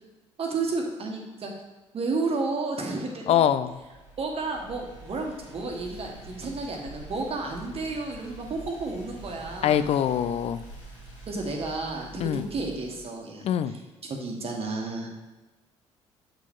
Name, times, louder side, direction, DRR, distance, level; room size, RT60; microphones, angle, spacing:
voice 1, 0.4-1.5 1.9-3.5 4.2-9.9 11.3-13.5 14.0-15.1, right 3 dB, 40° right, 1 dB, 1.4 m, -32 dB
voice 2, 3.3-3.8 9.6-10.6 12.2-12.4 13.4-13.7, left 9 dB, 45° left, 13 dB, 0.4 m, -23 dB
sound 1, 3.7-13.1, right 2 dB, 80° left, 1.5 m, -46 dB
7.6 x 4.8 x 3.7 m, 1.2 s
figure-of-eight pair, 50°, 15 cm